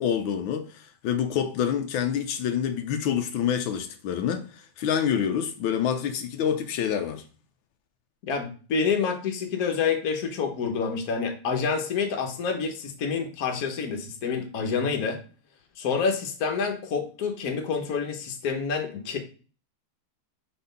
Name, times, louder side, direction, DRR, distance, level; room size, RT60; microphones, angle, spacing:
voice 1, 0.0-7.2, left 8 dB, 85° left, 1.5 m, -27 dB
voice 2, 8.3-15.2 15.8-19.2, left 5 dB, 55° left, 1.4 m, -28 dB
4.6 x 4.3 x 5.2 m
omnidirectional pair, 2.1 m